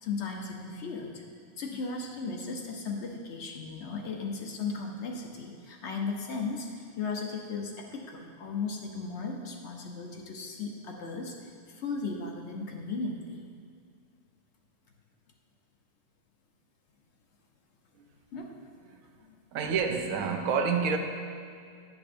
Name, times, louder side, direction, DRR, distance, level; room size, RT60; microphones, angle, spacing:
voice 1, 0.0-1.2 1.6-13.4 18.3-19.0 19.2-19.3, left 4 dB, 60° left, 1 dB, 0.9 m, -36 dB
voice 2, 19.5-21.0, right 5 dB, 85° right, 5 dB, 1.1 m, -28 dB
10.5 x 6.0 x 2.5 m, 2.2 s
omnidirectional pair, 1.5 m